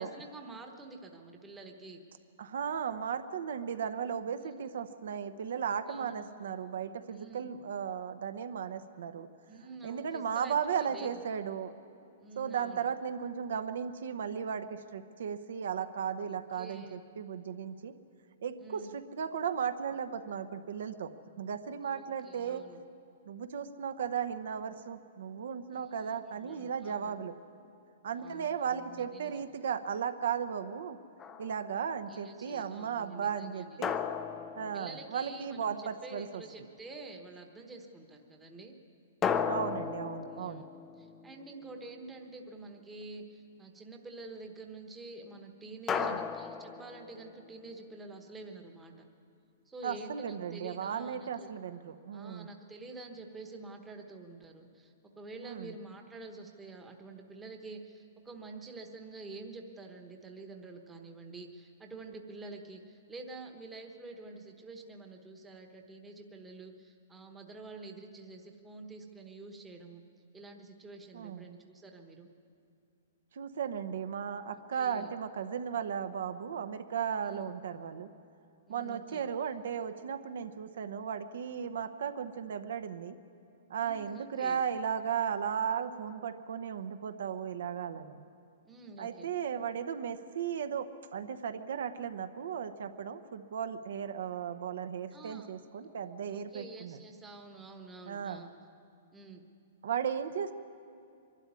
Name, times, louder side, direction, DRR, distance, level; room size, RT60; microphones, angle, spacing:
voice 1, 0.0-2.0 4.4-4.5 5.9-6.3 7.1-7.5 9.5-11.1 12.2-12.8 16.3-17.0 18.6-18.9 21.8-22.8 25.7-25.8 26.4-27.2 28.1-29.3 32.1-33.8 34.7-38.7 39.7-39.9 40.4-40.6 41.0-49.1 49.7-51.5 52.1-70.0 70.3-72.3 74.7-75.1 77.3-77.5 78.7-79.2 83.8-84.6 88.6-89.3 95.1-95.5 96.3-98.5 99.1-99.4, right 3 dB, 10° right, 3 dB, 1.1 m, -48 dB
voice 2, 2.4-9.3 9.8-11.7 12.4-17.9 18.4-22.6 23.3-27.3 28.0-31.0 31.4-34.0 34.6-36.4 39.5-40.7 45.9-46.2 49.8-52.5 55.4-55.7 71.1-71.4 73.3-78.1 78.7-83.2 83.7-88.2 89.0-97.0 98.1-98.4 99.8-100.5, right 7 dB, 70° right, 9 dB, 0.9 m, -36 dB
sound 1, 31.2-31.8 33.8-35.6 39.2-41.8 45.9-47.5, left 7 dB, 15° left, 0.5 m, -36 dB
22.5 x 12.5 x 9.6 m, 2.6 s
hypercardioid pair, 170°, 0 cm